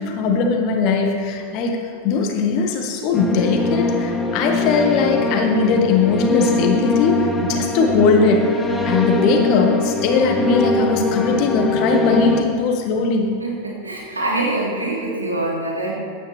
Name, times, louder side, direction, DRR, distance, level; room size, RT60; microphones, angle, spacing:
voice 1, 0.0-8.5 8.8-13.3, left 4 dB, 40° left, 3 dB, 1.7 m, -19 dB
sound 1, 3.1-12.4, left 3 dB, 10° left, 1.2 m, -22 dB
voice 2, 13.4-15.9, right 2 dB, 80° right, -4 dB, 3.3 m, -24 dB
16.0 x 10.5 x 3.4 m, 2.2 s
figure-of-eight pair, 90°, 0 cm